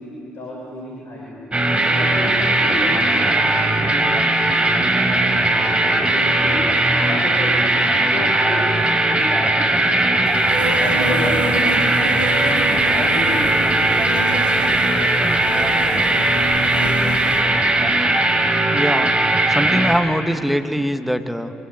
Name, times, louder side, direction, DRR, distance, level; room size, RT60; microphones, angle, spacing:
voice 1, 0.0-1.4 1.8-10.1 10.6-11.9 12.2-14.6, left 1 dB, 50° left, -3 dB, 6.4 m, -32 dB
sound 1, 1.5-20.0, right 2 dB, 25° right, 5.1 m, -18 dB
Insect, 10.3-17.4, right 1 dB, 90° right, 2.8 m, -29 dB
voice 2, 18.7-19.1 19.5-21.6, equal, ahead, 7 dB, 1.9 m, -22 dB
25.0 x 24.5 x 9.2 m, 2.6 s
figure-of-eight pair, 45°, 5 cm